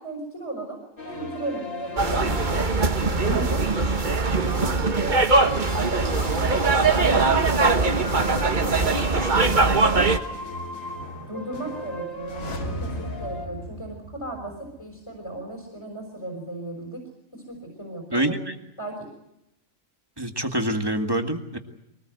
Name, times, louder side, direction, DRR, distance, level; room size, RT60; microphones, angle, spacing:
voice 1, 0.0-2.3 2.8-3.7 4.4-10.1 11.2-17.0 17.3-18.4 18.8-19.1, right 2 dB, 20° left, 1 dB, 5.6 m, -36 dB
sound 1, 1.0-13.5, left 1 dB, 70° left, 3.3 m, -38 dB
sound 2, 2.0-10.2, right 3 dB, 35° right, 1.4 m, -21 dB
sound 3, 12.1-15.0 15.2-15.3, equal, 45° left, 2.2 m, -36 dB
voice 2, 18.1-18.6 20.2-21.6, right 1 dB, 15° right, 5 dB, 1.9 m, -26 dB
24.0 x 19.0 x 7.9 m, 0.84 s
omnidirectional pair, 1.4 m